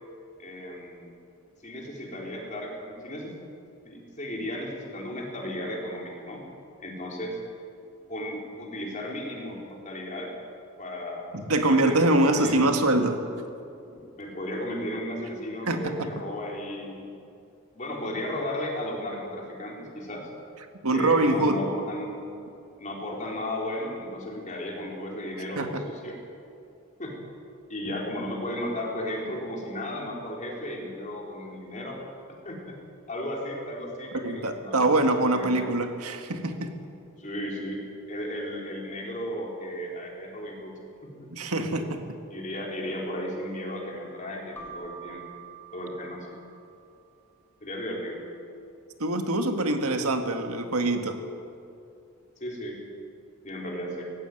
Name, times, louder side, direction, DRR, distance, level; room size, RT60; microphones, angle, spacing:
voice 1, 0.4-1.2 1.6-3.4 3.8-6.4 6.8-7.4 8.1-10.3 10.8-12.7 13.9-17.1 17.7-20.3 20.9-22.1 22.8-26.2 27.0-27.1 27.7-32.0 32.4-32.7 33.1-35.6 37.2-37.8 38.1-40.7 41.0-41.3 42.3-45.2 45.7-46.4 47.6-48.2 52.4-52.8 53.4-54.0, left 1 dB, 35° left, -1 dB, 4.1 m, -35 dB
voice 2, 11.3-13.2 15.7-16.1 20.8-21.6 25.6-25.8 34.2-36.7 41.3-42.0 49.0-51.2, right 2 dB, 80° right, 6 dB, 1.8 m, -24 dB
Keyboard (musical), 44.6-47.1, right 5 dB, 10° left, 2.0 m, -46 dB
19.0 x 15.5 x 9.4 m, 2.6 s
head